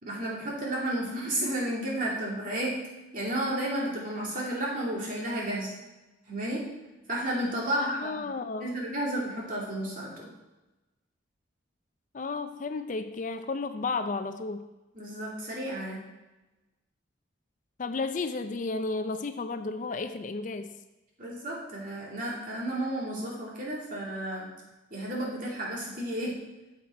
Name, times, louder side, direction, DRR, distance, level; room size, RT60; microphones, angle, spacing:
voice 1, 0.0-2.8 3.1-5.7 6.3-6.7 7.1-8.3 8.6-10.3 14.9-16.0 21.2-24.5 24.9-26.4, right 1 dB, 45° right, -3 dB, 2.6 m, -32 dB
voice 2, 7.7-8.7 12.1-14.6 17.8-20.7, left 3 dB, 45° left, 9 dB, 0.5 m, -33 dB
8.4 x 7.4 x 4.3 m, 1.0 s
head